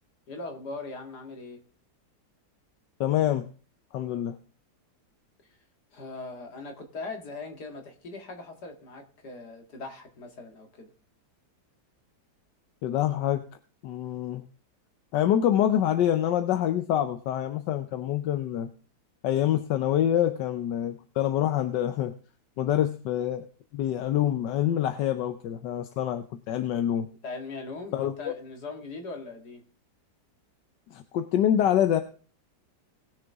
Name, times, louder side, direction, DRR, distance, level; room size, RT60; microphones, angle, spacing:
voice 1, 0.3-1.6 5.9-10.9 27.2-29.6, left 3 dB, 70° left, 3 dB, 2.5 m, -40 dB
voice 2, 3.0-3.5 3.9-4.4 12.8-13.4 13.8-14.4 15.1-18.7 19.2-22.1 22.6-23.4 23.7-27.1 27.9-28.3 30.9-32.0, left 11 dB, 85° left, 8 dB, 1.4 m, -26 dB
20.0 x 6.7 x 3.6 m, 0.39 s
omnidirectional pair, 1.8 m